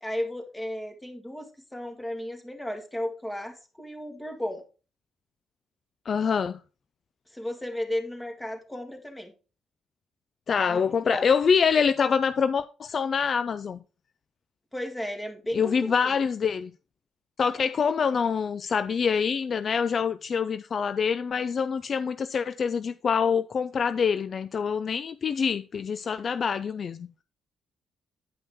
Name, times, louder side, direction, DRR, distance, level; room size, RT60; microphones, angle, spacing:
voice 1, 0.0-4.6 7.3-9.3 10.7-11.3 14.7-16.1, left 1 dB, 10° left, 1.8 m, -34 dB
voice 2, 6.1-6.6 10.5-13.8 15.5-16.7 17.4-27.1, left 6 dB, 50° left, 0.4 m, -25 dB
9.5 x 5.4 x 3.5 m
cardioid pair, 90°, 0 cm